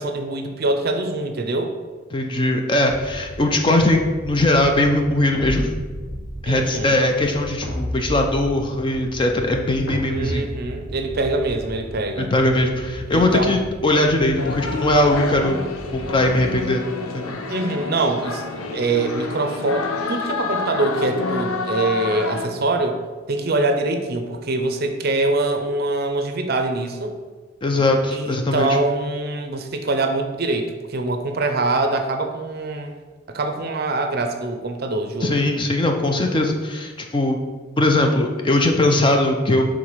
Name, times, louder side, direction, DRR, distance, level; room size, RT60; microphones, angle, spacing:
voice 1, 0.0-1.7 6.5-7.0 10.1-12.3 13.1-13.6 17.5-18.4 18.7-23.0 23.3-27.2 28.1-32.9 33.3-35.4, right 2 dB, 45° right, 5 dB, 0.5 m, -24 dB
voice 2, 2.1-5.8 6.4-10.5 12.2-15.6 15.9-16.8 17.1-17.4 27.6-28.8 35.2-37.4 37.8-39.6, left 1 dB, 25° left, 3 dB, 0.5 m, -20 dB
sound 1, 2.9-3.5 3.8-5.2 5.5-6.9 7.2-8.6 8.9-10.3 10.6-12.0 12.4-13.8 14.1-15.5 15.8-16.5, right 1 dB, 5° left, 1.0 m, -36 dB
sound 2, 5.3-6.4 7.6-8.9 9.9-11.1, equal, 55° left, 1.6 m, -31 dB
sound 3, 14.4-22.5, left 4 dB, 85° left, 0.6 m, -28 dB
4.8 x 3.7 x 5.5 m, 1.4 s
head